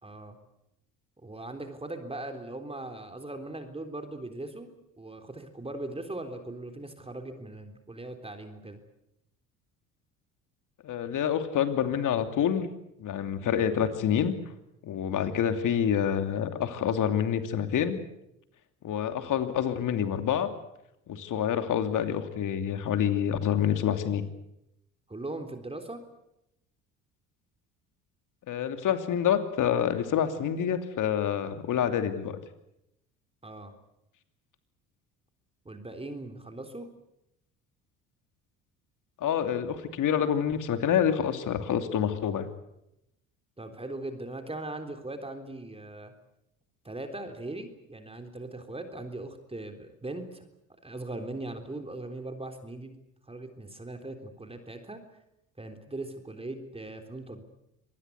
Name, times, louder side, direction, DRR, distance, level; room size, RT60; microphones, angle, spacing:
voice 1, 0.0-0.4 1.2-4.7 5.0-8.8 25.1-26.0 33.4-33.7 35.7-36.9 43.6-46.1 46.8-50.5 50.8-52.9 53.3-55.0 55.6-57.4, right 2 dB, 15° right, 6 dB, 3.7 m, -39 dB
voice 2, 10.8-12.7 13.0-14.3 14.8-18.0 18.8-20.5 21.1-24.2 28.5-32.4 39.2-42.5, left 9 dB, 50° left, 8 dB, 2.9 m, -27 dB
25.5 x 20.0 x 8.2 m, 0.85 s
hypercardioid pair, 60°, 39 cm